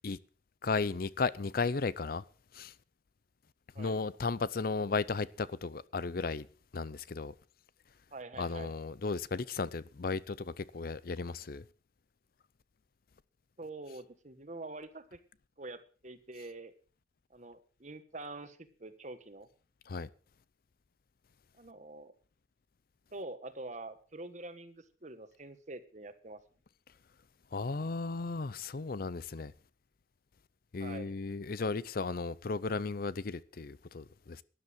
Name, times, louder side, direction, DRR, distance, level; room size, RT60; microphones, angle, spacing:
voice 1, 0.6-2.2 2.5-2.7 3.8-6.5 6.7-7.3 8.4-11.6 19.9-20.1 27.5-29.5 30.7-34.4, left 4 dB, 50° left, 0.5 m, -35 dB
voice 2, 8.1-8.7 13.6-15.2 15.6-16.7 17.3-19.5 21.6-22.1 23.1-26.4 30.8-31.1, right 2 dB, 40° right, 1.4 m, -46 dB
13.0 x 10.5 x 6.2 m
head